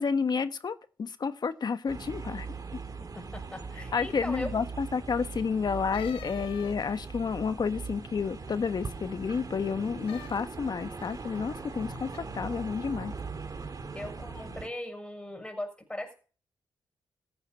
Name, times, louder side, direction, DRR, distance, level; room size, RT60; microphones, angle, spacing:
voice 1, 0.0-2.5 3.9-13.1, left 5 dB, 50° left, 1.2 m, -30 dB
sound 1, 1.9-14.7, right 4 dB, 45° right, 2.3 m, -40 dB
voice 2, 3.0-4.5 13.9-16.1, left 1 dB, 10° left, 6.4 m, -39 dB
sound 2, 5.9-7.1 10.0-10.4 11.0-11.4 12.1-12.2, left 12 dB, 85° left, 0.9 m, -47 dB
14.5 x 8.8 x 5.2 m
supercardioid pair, 50°, 9 cm